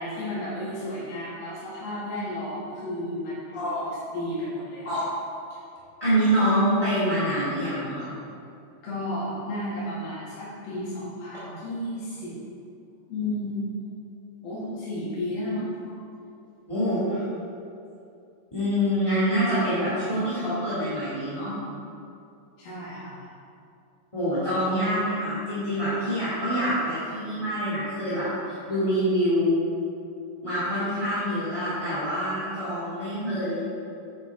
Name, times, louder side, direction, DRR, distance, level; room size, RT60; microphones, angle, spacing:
voice 1, 0.0-4.9 5.5-5.6 8.8-12.3 13.1-13.7 14.4-15.7 22.6-23.2, left 1 dB, 85° left, -9 dB, 3.9 m, -33 dB
voice 2, 6.0-8.1 16.7-17.2 18.5-21.5 24.1-29.6 30.4-33.6, equal, 15° left, -13 dB, 1.5 m, -25 dB
9.5 x 8.0 x 3.6 m, 2.6 s
omnidirectional pair, 4.1 m